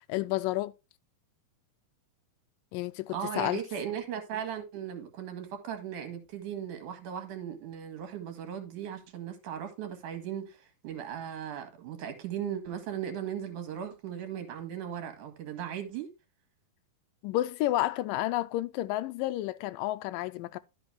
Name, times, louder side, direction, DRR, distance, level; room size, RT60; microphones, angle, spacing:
voice 1, 0.1-0.7 2.7-3.6 17.2-20.6, left 16 dB, 80° left, 2.0 m, -30 dB
voice 2, 3.1-16.1, right 9 dB, 60° right, 3.2 m, -37 dB
12.0 x 6.0 x 3.5 m
omnidirectional pair, 4.2 m